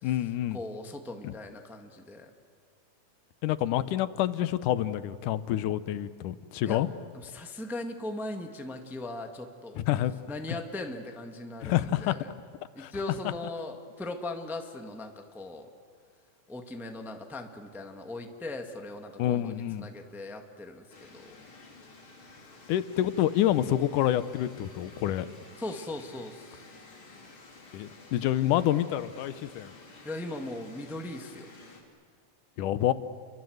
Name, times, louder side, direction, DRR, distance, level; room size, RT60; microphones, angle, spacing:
voice 1, 0.0-0.6 1.2-1.3 3.4-6.9 9.8-10.1 11.6-12.2 12.8-12.9 19.2-19.9 22.7-25.3 27.7-29.7 32.6-32.9, left 12 dB, 90° left, 14 dB, 2.4 m, -27 dB
voice 2, 0.5-2.3 6.6-6.8 7.1-9.8 10.3-12.3 12.7-15.7 16.5-21.3 25.6-26.6 30.0-31.5, left 2 dB, ahead, 4 dB, 0.9 m, -39 dB
sound 1, 20.9-31.8, left 3 dB, 40° left, 3.8 m, -52 dB
30.0 x 24.0 x 7.9 m, 2.1 s
omnidirectional pair, 3.5 m